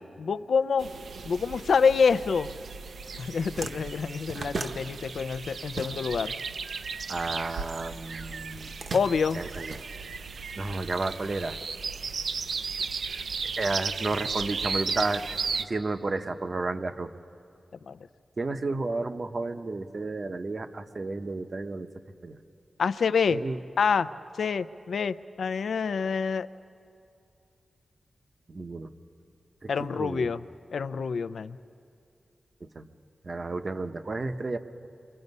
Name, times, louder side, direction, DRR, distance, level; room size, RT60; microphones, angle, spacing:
voice 1, 0.2-0.9 1.2-2.5 3.2-6.3 8.9-9.4 17.9-18.0 22.8-23.4 23.8-24.1 24.4-26.5 29.7-30.4 30.7-31.6, left 5 dB, 75° left, 14 dB, 0.5 m, -26 dB
sound 1, 0.8-15.6, right 5 dB, 70° right, 0.7 m, -35 dB
sound 2, 3.4-6.4 6.6-7.8 8.5-10.5, right 3 dB, 50° right, 1.2 m, -38 dB
voice 2, 7.1-8.7 9.3-9.8 10.6-11.6 13.6-15.2 15.6-17.1 18.4-21.9 22.2-22.4 23.3-23.6 28.5-28.9 29.6-29.7 30.0-30.3 32.8-32.9 33.2-34.6, right 3 dB, 35° right, 9 dB, 0.8 m, -32 dB
29.0 x 24.5 x 5.4 m, 2.5 s
wide cardioid pair, 170°, 0 cm